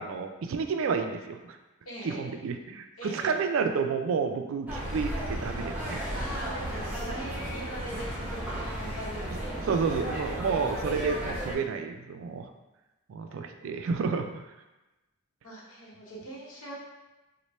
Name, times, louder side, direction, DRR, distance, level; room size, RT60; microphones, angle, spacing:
voice 1, 0.0-1.6 2.0-6.0 9.3-12.5 13.1-14.4, right 5 dB, 70° right, 6 dB, 0.3 m, -30 dB
voice 2, 1.9-2.4 3.0-3.3 6.1-9.9 13.3-13.8 15.4-16.7, right 1 dB, 85° left, -4 dB, 1.0 m, -41 dB
sound 1, 4.7-11.5, equal, 10° right, 0.6 m, -34 dB
3.1 x 2.2 x 4.1 m, 1.1 s
head